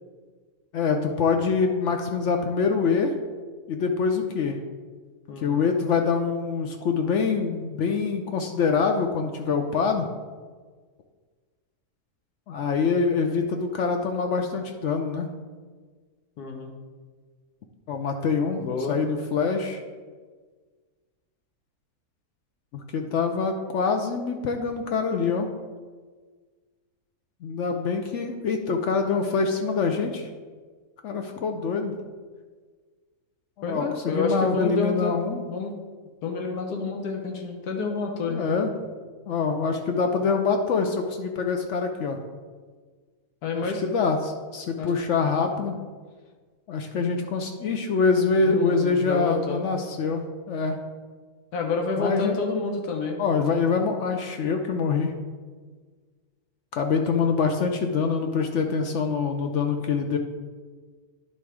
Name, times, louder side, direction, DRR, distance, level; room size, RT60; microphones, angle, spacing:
voice 1, 0.7-3.1 3.7-4.6 5.4-10.1 12.5-15.3 17.9-18.6 18.9-19.8 22.7-25.5 27.4-30.3 31.0-32.0 33.6-35.4 38.3-38.7 39.3-42.2 43.5-45.7 46.7-50.8 52.0-52.4 53.2-55.1 56.7-60.2, left 5 dB, 65° left, 5 dB, 0.8 m, -25 dB
voice 2, 5.3-5.6 16.4-16.7 18.6-19.0 33.6-35.1 35.5-35.8 36.2-38.4 43.4-43.8 44.8-44.9 48.4-49.6 51.5-53.2, left 4 dB, 90° left, 2 dB, 1.4 m, -29 dB
10.0 x 3.5 x 4.8 m, 1.5 s
omnidirectional pair, 1.6 m